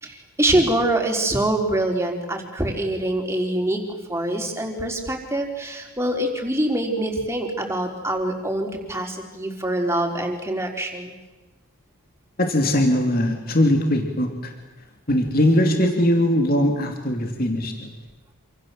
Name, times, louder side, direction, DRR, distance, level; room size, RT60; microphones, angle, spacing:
voice 1, 0.0-11.1, right 1 dB, 10° right, 2 dB, 4.2 m, -24 dB
voice 2, 12.4-14.5 15.1-17.9, left 1 dB, 40° left, 3 dB, 3.1 m, -20 dB
27.5 x 27.5 x 7.8 m, 1.1 s
head